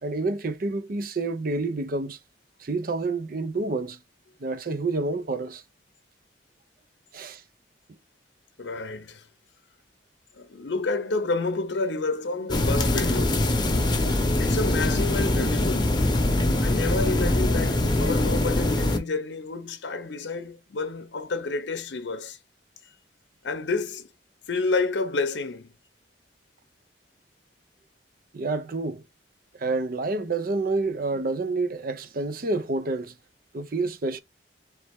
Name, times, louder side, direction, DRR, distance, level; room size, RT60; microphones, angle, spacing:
voice 1, 0.0-2.2 2.6-4.0 4.4-5.6 7.1-7.4 28.3-29.0 29.6-33.1 33.5-34.2, right 3 dB, 55° right, 0.6 m, -28 dB
voice 2, 8.6-9.3 10.3-13.5 14.4-16.0 16.6-22.4 23.4-24.1 24.5-25.7, left 3 dB, 80° left, 0.6 m, -29 dB
sound 1, 12.5-19.0, left 1 dB, 25° left, 0.8 m, -23 dB
4.1 x 3.3 x 3.5 m
head